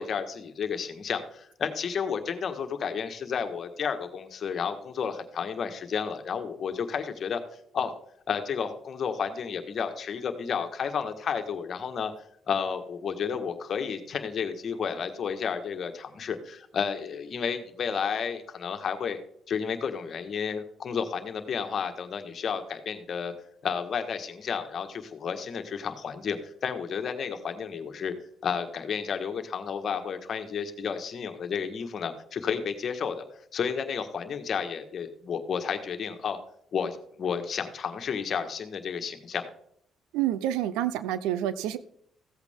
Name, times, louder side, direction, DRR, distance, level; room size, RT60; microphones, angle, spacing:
voice 1, 0.0-7.4 7.7-7.9 8.3-12.1 12.5-19.2 19.5-23.3 23.6-28.1 28.4-33.2 33.5-36.4 36.7-39.5, left 6 dB, 55° left, 7 dB, 1.6 m, -31 dB
voice 2, 40.1-41.8, right 12 dB, 90° right, 15 dB, 0.7 m, -28 dB
15.5 x 8.2 x 3.7 m, 0.67 s
supercardioid pair, 70°, 0 cm